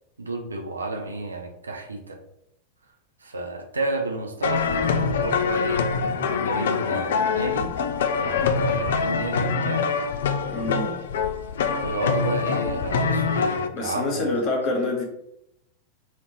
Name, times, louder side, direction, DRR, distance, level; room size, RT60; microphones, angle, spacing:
voice 1, 0.2-2.2 3.2-7.7 8.2-9.9 10.5-11.0 11.8-14.4, right 2 dB, 75° right, 3 dB, 0.6 m, -31 dB
sound 1, 4.4-13.7, left 5 dB, 60° left, 0.3 m, -24 dB
voice 2, 10.5-10.9 13.7-15.0, left 2 dB, 40° left, 0 dB, 1.1 m, -26 dB
4.2 x 2.6 x 3.0 m, 0.80 s
figure-of-eight pair, 90°, 0 cm